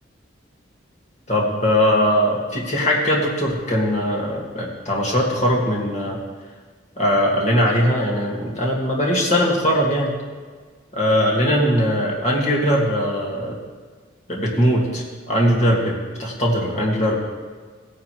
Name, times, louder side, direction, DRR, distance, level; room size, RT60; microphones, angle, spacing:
voice 1, 1.3-6.2 7.0-10.1 10.9-13.6 14.3-17.2, equal, 35° left, -3 dB, 2.1 m, -20 dB
16.0 x 10.0 x 3.2 m, 1.5 s
head